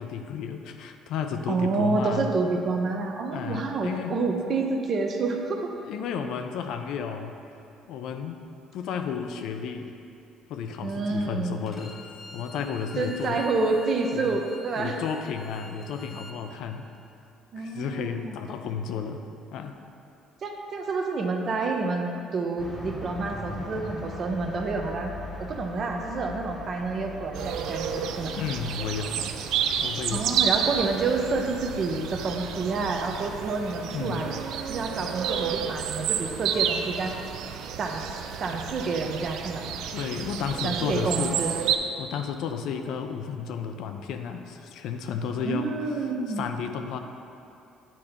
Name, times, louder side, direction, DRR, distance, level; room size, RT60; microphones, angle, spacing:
voice 1, 0.0-2.3 3.3-4.2 5.9-7.4 7.9-8.4 8.7-9.9 10.5-12.0 12.3-13.4 14.1-14.3 14.8-16.9 17.6-19.2 19.5-19.8 28.4-29.3 29.8-30.4 33.9-34.3 39.9-41.4 42.0-45.8 46.3-47.0, left 7 dB, 70° left, 6 dB, 0.4 m, -32 dB
voice 2, 1.5-5.7 10.8-11.5 13.0-15.0 17.5-18.3 20.4-28.3 30.1-34.3 34.6-37.2 37.8-39.7 40.6-41.5 45.4-46.5, right 3 dB, 45° right, 3 dB, 0.7 m, -28 dB
Bowed string instrument, 11.7-16.4, left 2 dB, 40° left, 0.8 m, -47 dB
sound 1, 22.6-33.3, left 2 dB, 5° left, 1.0 m, -42 dB
sound 2, 27.3-41.8, right 8 dB, 75° right, 0.3 m, -30 dB
8.4 x 2.9 x 5.0 m, 2.7 s
cardioid pair, 105°, 0 cm